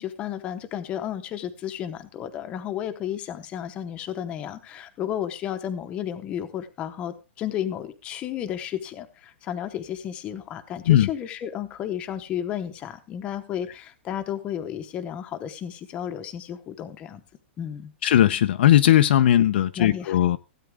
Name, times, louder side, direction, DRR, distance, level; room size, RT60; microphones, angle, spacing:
voice 1, 0.0-17.2 17.6-17.9 19.8-20.2, left 10 dB, 15° left, 0.9 m, -33 dB
voice 2, 18.0-20.4, left 12 dB, 55° left, 0.6 m, -18 dB
16.0 x 9.1 x 3.6 m
supercardioid pair, 180°, 7 cm